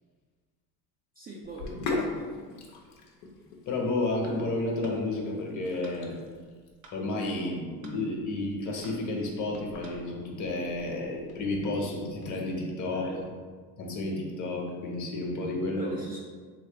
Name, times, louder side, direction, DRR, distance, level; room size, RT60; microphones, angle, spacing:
voice 1, 1.2-2.4 12.9-13.2 15.8-16.3, right 2 dB, 20° right, -3 dB, 0.3 m, -43 dB
Sink (filling or washing), 1.4-12.3, left 3 dB, 80° left, 0.8 m, -41 dB
voice 2, 3.7-6.1 6.9-13.1 13.8-15.9, left 2 dB, 40° left, -1 dB, 1.0 m, -31 dB
sound 1, 4.8-5.0 5.8-6.0 6.8-7.0 7.8-8.0 8.8-9.0 9.8-10.0, right 2 dB, 50° right, 0.8 m, -51 dB
3.2 x 3.1 x 3.0 m, 1.6 s
hypercardioid pair, 85°, 45 cm